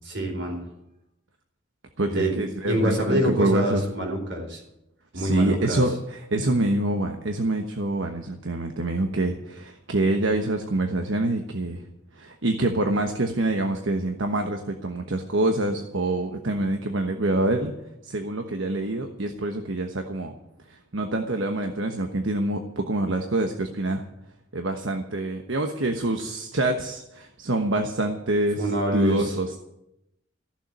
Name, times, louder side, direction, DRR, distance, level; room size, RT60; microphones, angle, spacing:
voice 1, 0.0-0.6 2.1-2.4 2.7-4.6 5.1-5.8 28.6-29.3, right 1 dB, 60° right, 2 dB, 4.5 m, -26 dB
voice 2, 2.0-3.8 5.1-11.8 12.1-17.7 18.0-20.3 20.7-24.0 24.5-29.6, right 2 dB, 80° right, 5 dB, 1.2 m, -26 dB
15.0 x 7.3 x 9.8 m, 0.84 s
head